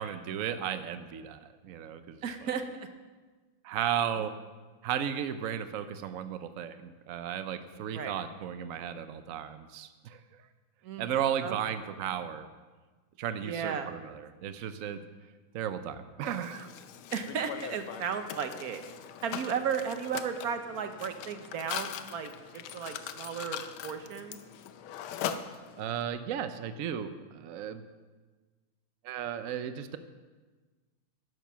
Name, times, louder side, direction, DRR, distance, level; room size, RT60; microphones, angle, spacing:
voice 1, 0.0-2.2 3.6-4.3 4.8-10.2 11.0-12.5 13.2-15.0 15.5-16.7 25.8-27.8 29.0-30.0, right 9 dB, 85° right, 10 dB, 0.7 m, -34 dB
voice 2, 2.2-2.9 4.2-4.3 7.9-8.1 10.8-11.1 11.4-11.7 13.4-13.9 17.1-18.8 19.2-24.4, right 7 dB, 55° right, 7 dB, 1.2 m, -35 dB
Mechanisms, 16.2-26.0, left 9 dB, 80° left, 1.6 m, -41 dB
11.5 x 10.5 x 6.2 m, 1.3 s
omnidirectional pair, 2.2 m